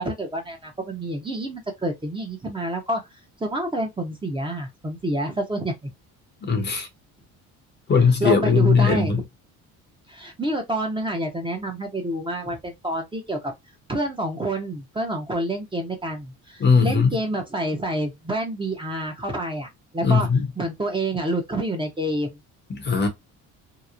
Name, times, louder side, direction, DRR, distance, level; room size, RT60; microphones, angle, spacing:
voice 1, 0.0-3.0 3.4-5.9 8.2-9.1 10.1-13.5 13.9-19.7 19.9-20.3 20.6-22.4, right 1 dB, 15° right, 0.8 m, -28 dB
voice 2, 6.4-6.9 7.9-9.2 16.6-17.1 20.0-20.5 22.7-23.1, left 5 dB, 30° left, 0.8 m, -19 dB
2.9 x 2.0 x 2.4 m
cardioid pair, 90°, 34 cm